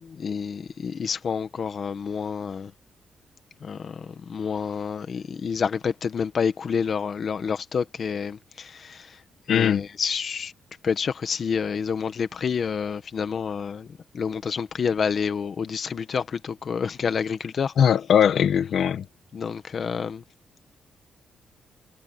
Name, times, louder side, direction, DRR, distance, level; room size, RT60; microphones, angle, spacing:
voice 1, 0.0-2.7 3.6-9.2 9.5-10.5 10.8-13.9 14.1-17.7 19.3-20.2, left 6 dB, 45° left, 1.2 m, -28 dB
voice 2, 9.5-9.8 17.8-19.0, left 8 dB, 60° left, 1.3 m, -20 dB
cardioid pair, 150°, 0 cm